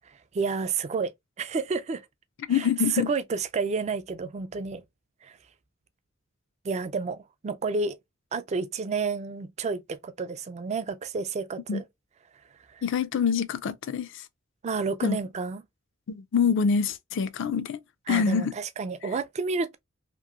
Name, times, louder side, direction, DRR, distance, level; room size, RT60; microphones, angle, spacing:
voice 1, 0.3-1.1 1.4-2.0 2.5-2.7 2.9-4.8 5.2-5.4 6.6-8.0 8.3-11.8 12.7-12.8 14.6-15.6 18.1-19.8, right 4 dB, 35° right, 0.3 m, -30 dB
voice 2, 2.5-3.1 11.7-11.8 12.8-14.2 15.0-15.2 16.1-17.8 18.1-18.5, left 6 dB, 60° left, 0.4 m, -25 dB
2.9 x 2.5 x 2.4 m
head